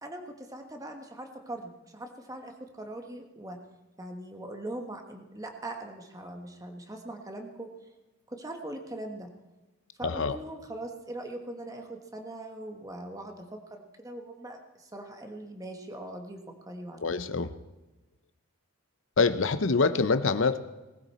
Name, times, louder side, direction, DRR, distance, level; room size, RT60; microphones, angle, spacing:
voice 1, 0.0-3.6 4.0-7.7 8.3-9.3 10.0-17.2, right 1 dB, 15° right, 4 dB, 1.3 m, -41 dB
voice 2, 10.0-10.4 17.0-17.5 19.2-20.6, left 4 dB, 60° left, 11 dB, 0.7 m, -25 dB
19.5 x 14.0 x 4.2 m, 1.1 s
head